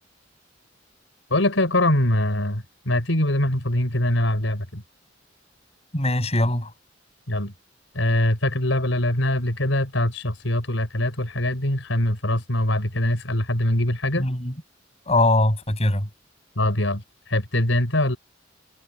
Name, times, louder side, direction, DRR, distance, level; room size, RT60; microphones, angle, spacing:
voice 1, 1.3-4.8 7.3-7.5 7.9-14.3 16.6-17.0 17.3-18.2, left 1 dB, 90° left, 4.3 m, -23 dB
voice 2, 5.9-6.7 14.1-14.5 15.1-16.1, left 1 dB, 35° left, 7.9 m, -21 dB
head